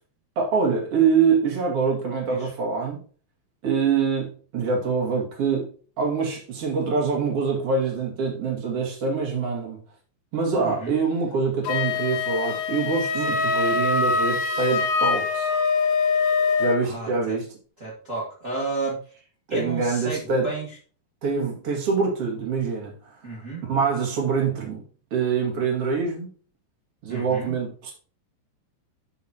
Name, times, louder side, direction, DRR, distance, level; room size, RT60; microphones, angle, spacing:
voice 1, 0.4-3.0 3.6-5.7 6.0-9.8 10.3-15.5 16.6-17.5 19.5-20.5 21.2-23.1 23.6-24.8 25.1-26.3 27.0-27.9, right 5 dB, 45° right, 2.4 m, -25 dB
voice 2, 10.6-10.9 13.3-13.4 16.8-17.4 17.8-19.0 19.5-20.8 23.2-23.7 27.1-27.5, right 3 dB, 70° right, 0.7 m, -32 dB
Wind instrument woodwind instrument, 11.6-16.8, left 4 dB, 80° left, 3.1 m, -23 dB
9.4 x 6.3 x 2.9 m
omnidirectional pair, 5.1 m